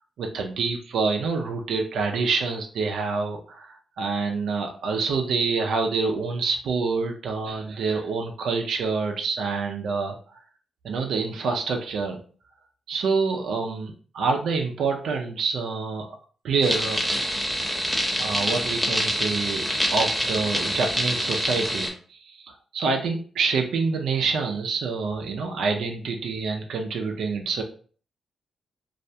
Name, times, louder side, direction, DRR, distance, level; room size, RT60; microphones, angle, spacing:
voice 1, 0.2-10.4 10.8-12.2 12.9-16.2 16.4-17.0 18.2-19.6 19.9-27.6, right 4 dB, 80° right, 3 dB, 0.4 m, -27 dB
sound 1, 16.6-21.9, equal, ahead, 0.7 m, -26 dB
2.3 x 2.1 x 2.7 m, 0.42 s
cardioid pair, 90°, 0 cm